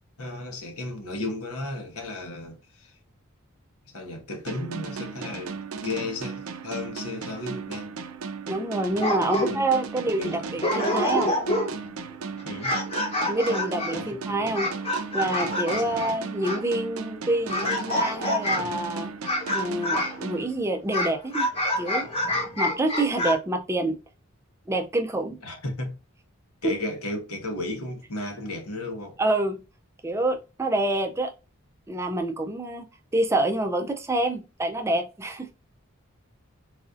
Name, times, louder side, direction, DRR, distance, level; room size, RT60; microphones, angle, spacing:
voice 1, 0.2-2.9 3.9-8.0 9.2-9.6 10.2-10.5 12.4-12.7 13.9-14.1 15.7-16.1 25.4-26.0 26.6-29.2, left 2 dB, 90° left, 1.1 m, -34 dB
sound 1, 4.5-21.1, right 5 dB, 75° right, 0.5 m, -36 dB
voice 2, 8.5-11.4 13.3-14.7 15.1-19.1 19.5-21.5 21.8-22.1 22.6-24.0 24.7-25.4 29.2-29.6 30.0-31.3 31.9-32.8 33.1-35.5, right 2 dB, 10° right, 0.4 m, -27 dB
sound 2, 8.9-9.8 10.3-10.4 10.6-11.9 12.4-16.7 17.5-18.8 19.2-20.2 20.9-23.3, left 1 dB, 25° left, 1.0 m, -27 dB
4.0 x 2.6 x 2.4 m
head